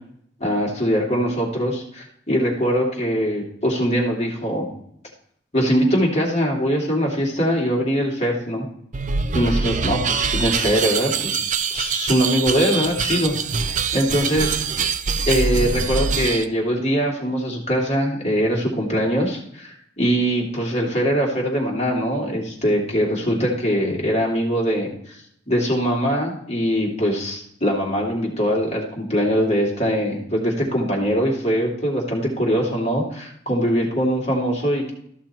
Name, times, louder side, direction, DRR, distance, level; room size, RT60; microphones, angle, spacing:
voice 1, 0.4-4.6 5.5-8.6 9.3-11.4 11.7-13.3 13.9-14.6 15.3-34.9, equal, 35° left, -1 dB, 2.7 m, -22 dB
sound 1, 8.9-16.5, right 5 dB, 45° right, 0.5 m, -24 dB
13.5 x 6.0 x 4.4 m, 0.69 s
head